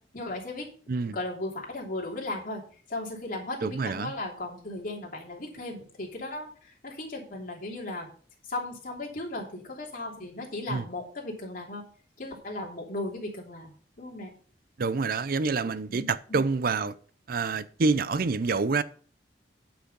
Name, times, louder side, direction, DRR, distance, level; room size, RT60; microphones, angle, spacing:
voice 1, 0.1-0.7 1.1-2.6 2.9-8.1 8.4-11.8 12.2-14.3 15.9-16.4, left 2 dB, 50° left, 3.0 m, -36 dB
voice 2, 3.6-4.1 10.7-10.8 14.8-16.9 17.3-18.8, right 4 dB, 55° right, 0.5 m, -27 dB
10.0 x 6.1 x 5.4 m
head